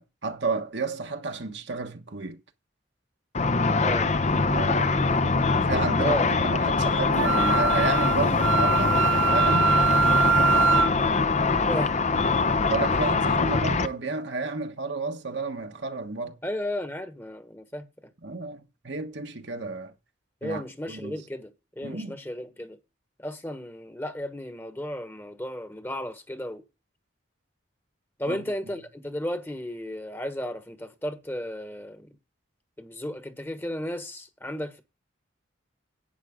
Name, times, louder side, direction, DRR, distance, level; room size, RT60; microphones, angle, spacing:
voice 1, 0.0-2.4 4.3-4.9 5.5-9.7 11.5-11.8 12.7-16.4 18.2-19.9 20.4-21.2 21.8-22.2 28.3-28.4, right 3 dB, 60° right, 1.3 m, -32 dB
Car / Traffic noise roadway noise / Engine, 3.3-13.9, left 4 dB, 35° left, 0.7 m, -23 dB
voice 2, 3.8-4.1 6.0-6.3 11.7-11.9 16.4-17.9 20.4-21.5 21.8-22.8 23.2-26.6 28.2-32.1 32.8-34.8, equal, 10° left, 1.2 m, -34 dB
Wind instrument woodwind instrument, 7.2-10.9, right 6 dB, 85° right, 1.5 m, -23 dB
11.5 x 9.0 x 3.7 m
head